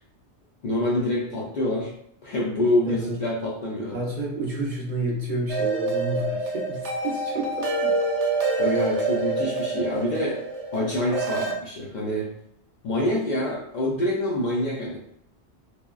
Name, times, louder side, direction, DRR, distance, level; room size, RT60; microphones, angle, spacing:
voice 1, 0.6-1.9 2.2-4.0 8.6-10.4 10.7-12.3 12.8-15.0, left 1 dB, 55° left, -4 dB, 0.5 m, -26 dB
voice 2, 2.8-3.2 3.9-7.9, right 2 dB, 55° right, -3 dB, 0.6 m, -30 dB
sound 1, 5.5-11.5, right 3 dB, 85° right, 0.9 m, -26 dB
3.4 x 2.1 x 2.3 m, 0.68 s
omnidirectional pair, 1.1 m